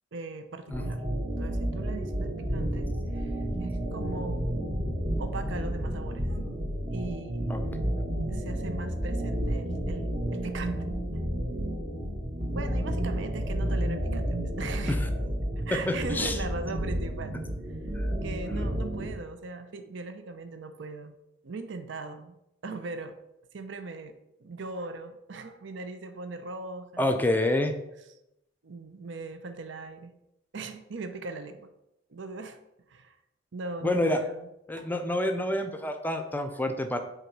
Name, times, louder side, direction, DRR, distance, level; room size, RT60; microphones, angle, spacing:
voice 1, 0.1-1.0 1.4-4.4 5.2-6.4 6.9-7.5 8.3-10.9 12.5-15.0 15.7-17.4 18.2-21.1 21.4-22.4 22.6-23.2 23.5-27.1 28.6-30.1 30.5-31.7 32.1-32.6 32.9-33.2 33.5-34.5 34.8-34.9, right 3 dB, 65° right, 9 dB, 0.6 m, -39 dB
sound 1, 0.7-19.2, equal, 30° right, 1.0 m, -31 dB
voice 2, 15.9-16.4 17.9-18.1 27.0-27.7 33.8-34.2 34.7-37.0, left 1 dB, 10° left, 6 dB, 0.5 m, -28 dB
6.7 x 4.2 x 4.7 m, 0.86 s
head